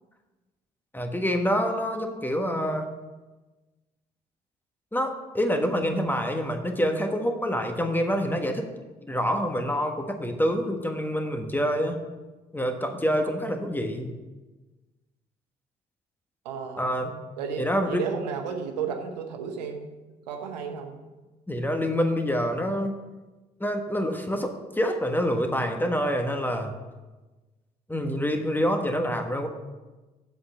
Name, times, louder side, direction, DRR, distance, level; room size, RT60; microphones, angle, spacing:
voice 1, 0.9-2.9 4.9-8.7 9.1-12.0 12.5-14.1 16.8-17.1 17.6-18.0 21.5-23.0 23.6-26.7 27.9-29.5, equal, 10° left, 5 dB, 1.4 m, -26 dB
voice 2, 16.4-16.9 17.4-19.9 20.3-21.0, right 6 dB, 80° right, 5 dB, 0.9 m, -33 dB
7.6 x 6.4 x 6.7 m, 1.2 s
figure-of-eight pair, 45°, 21 cm